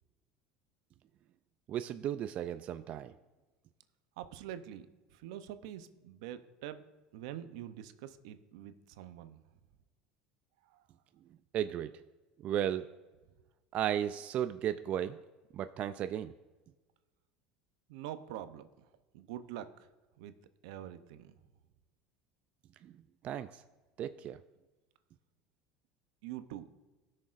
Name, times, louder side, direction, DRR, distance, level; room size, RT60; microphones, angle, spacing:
voice 1, 1.7-3.1 11.5-11.9 12.4-12.9 13.7-15.2 15.5-16.3 22.8-22.9 23.2-23.5 24.0-24.4, right 10 dB, 45° right, 11 dB, 0.3 m, -34 dB
voice 2, 4.2-4.9 5.1-6.8 7.1-9.4 10.6-10.8 17.9-18.9 19.1-19.7 20.2-20.3 20.6-21.3 26.2-26.7, right 11 dB, 80° right, 11 dB, 0.6 m, -45 dB
18.5 x 6.4 x 2.5 m, 1.2 s
supercardioid pair, 115°, 3 cm